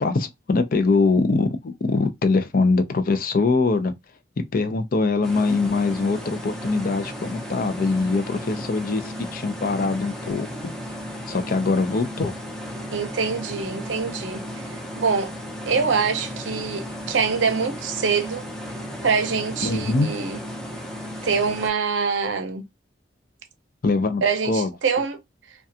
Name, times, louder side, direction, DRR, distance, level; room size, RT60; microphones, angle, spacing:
voice 1, 0.0-3.9 4.5-10.7 11.3-12.3 19.6-20.1 23.8-24.2 24.5-24.7, left 3 dB, 50° left, 0.4 m, -22 dB
sound 1, 5.2-21.7, equal, 5° left, 0.5 m, -35 dB
voice 2, 12.9-15.3 15.7-18.5 19.0-20.4 21.2-22.6 24.2-25.2, right 5 dB, 85° right, 0.6 m, -24 dB
2.4 x 2.2 x 2.6 m
head